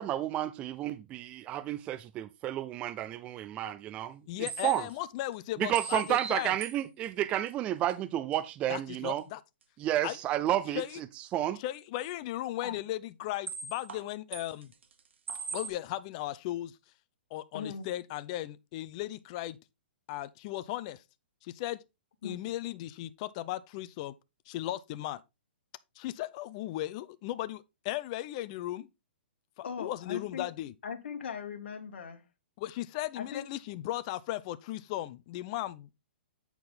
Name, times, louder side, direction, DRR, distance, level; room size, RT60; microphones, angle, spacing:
voice 1, 0.0-4.2 4.6-4.8 5.6-9.2 9.8-10.8 11.3-11.6, right 12 dB, 20° right, 0.4 m, -31 dB
voice 2, 4.3-6.6 8.7-9.4 10.0-10.2 10.7-11.0 11.6-14.7 15.5-16.8 17.3-19.6 20.1-21.0 21.4-21.8 22.2-24.1 24.5-25.2 26.0-28.9 29.6-30.7 32.6-36.0, left 15 dB, 35° left, 0.6 m, -36 dB
sound 1, 4.5-4.9 5.3-5.4 5.8-6.8 7.0-7.1 7.5-7.6 7.9-8.0 8.3-8.4 8.8-8.9 9.2-9.3 13.5-14.1 14.3-15.0 15.3-15.7, right 5 dB, 80° right, 1.5 m, -40 dB
voice 3, 17.5-17.9 22.2-22.4 29.6-30.5 30.8-32.2 33.1-33.5, left 6 dB, 70° left, 1.7 m, -39 dB
8.6 x 4.6 x 3.9 m
hypercardioid pair, 155°, 6 cm